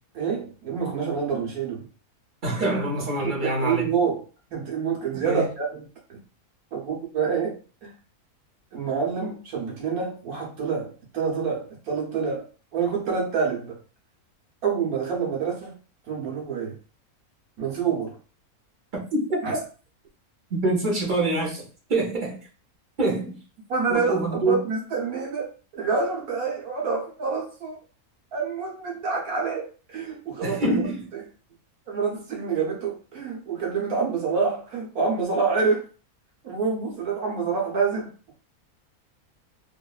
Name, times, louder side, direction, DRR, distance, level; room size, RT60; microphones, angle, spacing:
voice 1, 0.1-1.9 3.2-4.3 4.5-6.2 6.7-7.9 8.7-13.8 14.6-15.8 16.1-16.8 17.6-18.2 19.4-19.6 23.7-25.5 25.8-27.7 28.3-30.6 31.1-31.2 31.9-35.9 36.4-38.3, right 5 dB, 70° right, -2 dB, 1.4 m, -27 dB
voice 2, 2.4-3.9 5.2-5.5 19.1-19.4 20.5-21.6 21.9-22.4 23.0-23.4 23.9-24.6 30.4-31.1, right 2 dB, 40° right, -2 dB, 0.8 m, -25 dB
3.1 x 2.6 x 2.3 m, 0.37 s
omnidirectional pair, 1.6 m